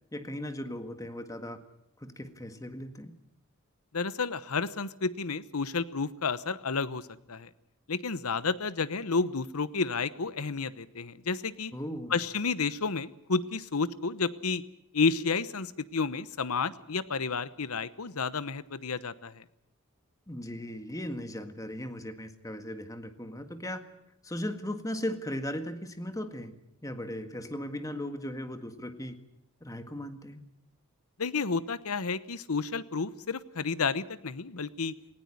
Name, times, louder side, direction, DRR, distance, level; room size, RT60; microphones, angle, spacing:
voice 1, 0.1-1.6 2.0-3.1 11.7-12.2 20.3-23.8 24.2-26.5 26.8-29.2 29.6-30.4, left 1 dB, 15° left, 8 dB, 1.8 m, -37 dB
voice 2, 3.9-7.0 7.3-7.5 7.9-11.7 12.1-14.6 14.9-19.4 31.2-34.9, left 4 dB, 85° left, 16 dB, 1.0 m, -31 dB
19.0 x 17.5 x 9.8 m, 0.80 s
head